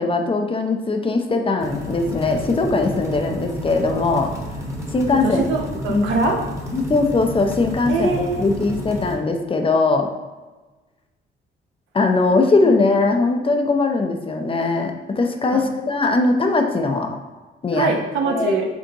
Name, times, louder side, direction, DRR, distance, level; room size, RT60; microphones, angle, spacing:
voice 1, 0.0-4.3 4.9-5.4 5.9-6.1 6.7-10.1 11.9-17.2 17.6-17.9 18.2-18.5, left 3 dB, 25° left, 4 dB, 0.5 m, -20 dB
sound 1, 1.6-9.1, equal, 15° right, 1.0 m, -31 dB
voice 2, 5.2-6.4 7.9-8.7 12.6-12.8 15.5-15.6 17.7-18.6, right 3 dB, 75° right, 1 dB, 0.8 m, -23 dB
5.2 x 3.5 x 2.8 m, 1.2 s
cardioid pair, 90°, 20 cm